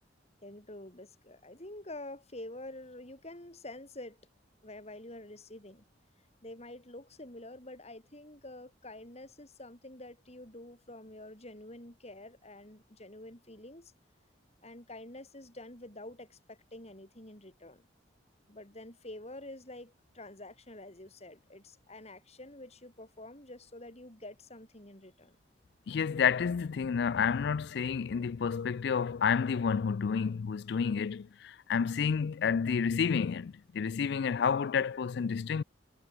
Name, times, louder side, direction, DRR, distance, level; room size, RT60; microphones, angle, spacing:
voice 1, 0.4-4.2 4.6-5.8 6.4-13.9 14.6-17.9 18.5-25.4, left 1 dB, 35° left, 6.2 m, -48 dB
voice 2, 25.9-35.6, left 6 dB, 60° left, 0.4 m, -30 dB
head